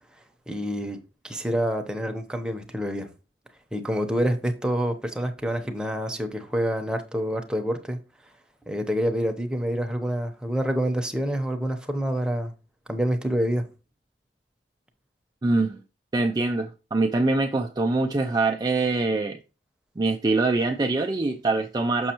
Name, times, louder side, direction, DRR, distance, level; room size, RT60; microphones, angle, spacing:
voice 1, 0.5-1.0 1.2-3.1 3.7-8.0 8.6-12.5 12.9-13.6, equal, 5° right, 0.8 m, -27 dB
voice 2, 15.4-15.8 16.1-19.4 20.0-22.1, right 3 dB, 25° right, 0.4 m, -24 dB
6.2 x 6.2 x 2.9 m
head